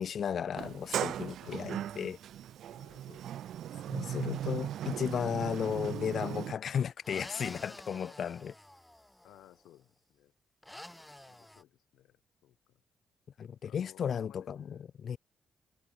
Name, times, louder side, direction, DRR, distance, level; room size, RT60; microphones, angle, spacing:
voice 1, 0.0-2.2 3.9-8.5 13.4-15.2, left 8 dB, 65° left, 0.4 m, -34 dB
Sliding door, 0.6-6.5, right 11 dB, 80° right, 0.8 m, -38 dB
voice 2, 1.4-2.0 2.7-4.4 7.6-8.5 9.2-10.3 11.2-12.8 13.6-14.9, left 13 dB, 85° left, 2.9 m, -60 dB
sound 1, 5.4-6.0 7.0-9.5 10.6-11.6, left 1 dB, 10° left, 1.8 m, -49 dB
supercardioid pair, 65°, 0 cm